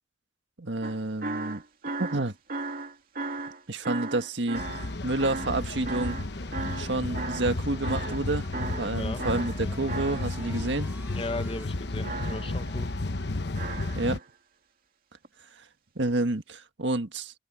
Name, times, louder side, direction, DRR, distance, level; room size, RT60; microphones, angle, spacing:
voice 1, 0.6-1.6 2.0-2.3 3.7-4.6 5.0-6.2 6.8-8.5 8.8-10.9 13.9-14.2 15.9-17.3, right 2 dB, 80° right, 1.7 m, -29 dB
sound 1, 0.8-7.6 7.8-8.3 8.5-10.6 12.0-12.8 13.6-14.3 15.2-15.3, right 3 dB, 55° right, 2.7 m, -36 dB
sound 2, 4.6-14.2, left 2 dB, 65° left, 1.0 m, -33 dB
sound 3, 5.2-11.7, right 1 dB, 10° right, 1.7 m, -48 dB
voice 2, 11.1-12.9, left 2 dB, 30° left, 0.8 m, -36 dB
head